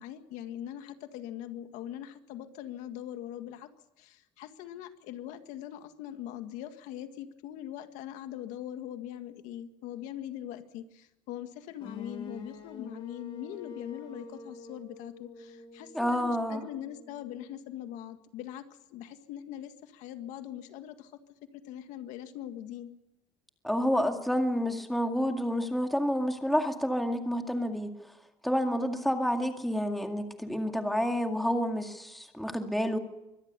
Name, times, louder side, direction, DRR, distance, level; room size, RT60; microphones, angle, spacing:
voice 1, 0.0-3.7 4.0-18.6 18.9-21.1 21.6-22.9, left 11 dB, 75° left, 8 dB, 1.8 m, -41 dB
sound 1, 11.8-17.7, left 3 dB, 45° left, 6.2 m, -47 dB
voice 2, 15.9-16.6 23.6-27.9 28.4-33.0, equal, ahead, 4 dB, 2.1 m, -29 dB
24.0 x 17.5 x 6.9 m, 0.91 s
cardioid pair, 145°, 13 cm